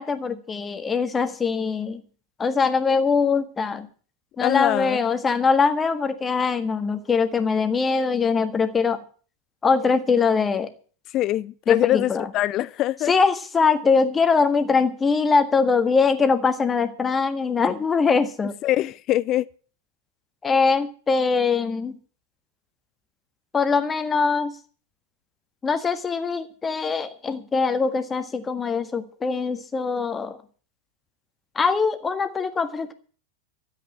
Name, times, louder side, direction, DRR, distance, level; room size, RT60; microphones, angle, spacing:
voice 1, 0.0-2.0 2.4-3.9 4.4-9.0 9.6-10.7 11.7-12.3 13.1-18.5 20.4-21.9 23.5-24.5 25.6-30.4 31.5-32.9, left 5 dB, 15° left, 1.6 m, -22 dB
voice 2, 4.4-5.0 11.1-13.1 18.6-19.5, left 14 dB, 35° left, 0.6 m, -23 dB
13.5 x 8.2 x 8.4 m
figure-of-eight pair, 90°, 0 cm